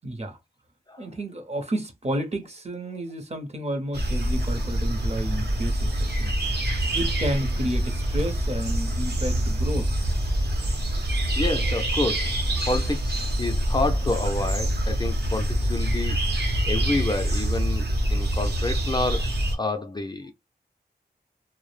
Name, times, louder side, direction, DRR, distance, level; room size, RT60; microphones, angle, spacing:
voice 1, 0.0-0.4 1.0-6.3 6.9-9.9, right 1 dB, 40° right, 0.7 m, -31 dB
sound 1, 3.9-19.6, right 1 dB, 80° right, 0.9 m, -25 dB
voice 2, 11.4-12.3 12.7-19.3 19.5-20.3, left 2 dB, 25° left, 0.4 m, -29 dB
2.2 x 2.0 x 3.1 m
wide cardioid pair, 90°, 17 cm